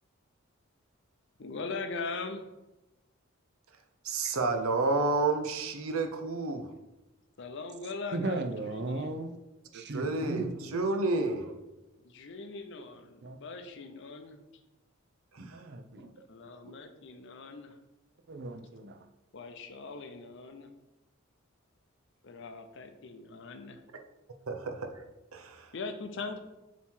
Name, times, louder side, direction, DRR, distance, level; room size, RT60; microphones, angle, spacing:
voice 1, 1.4-2.5 7.4-9.2 12.0-14.4 16.3-17.8 19.3-20.7 22.2-23.8 25.7-26.4, left 3 dB, 60° left, 8 dB, 0.6 m, -41 dB
voice 2, 4.0-6.7 9.7-11.6 15.3-15.6 16.6-16.8 24.5-25.0 25.3-25.7, right 3 dB, 90° right, 6 dB, 0.7 m, -30 dB
voice 3, 8.1-9.4 9.7-10.5 13.2-13.4 15.4-16.1 18.3-19.0, right 2 dB, 55° right, 6 dB, 0.6 m, -36 dB
7.1 x 3.1 x 4.5 m, 0.99 s
head